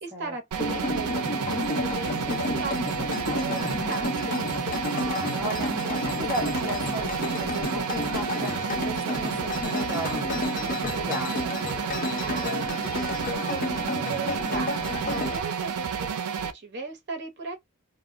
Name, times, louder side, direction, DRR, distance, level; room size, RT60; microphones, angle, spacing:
voice 1, 0.0-4.6 12.2-17.6, right 3 dB, 50° right, 0.8 m, -38 dB
sound 1, 0.5-16.5, right 7 dB, 75° right, 0.4 m, -31 dB
sound 2, 0.6-15.4, left 2 dB, 40° left, 0.6 m, -31 dB
voice 2, 4.9-11.7, right 1 dB, 10° right, 0.8 m, -36 dB
2.1 x 2.1 x 3.5 m
head